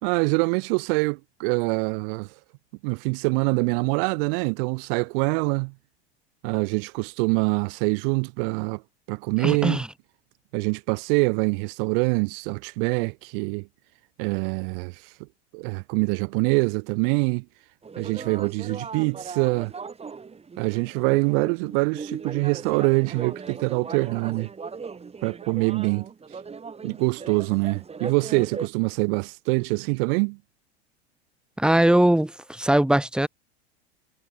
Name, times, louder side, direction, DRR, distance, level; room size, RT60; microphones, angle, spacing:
voice 1, 0.0-2.3 2.8-5.7 6.4-8.8 9.1-9.8 10.5-13.7 14.2-15.0 15.5-17.4 18.0-19.7 20.6-24.5 25.2-26.1 26.8-30.4, right 34 dB, 55° right, 1.8 m, -24 dB
voice 2, 9.4-9.9 31.6-33.3, right 1 dB, 5° right, 2.7 m, -20 dB
sound 1, 17.8-28.7, right 5 dB, 20° right, 4.1 m, -38 dB
hypercardioid pair, 85°, 33 cm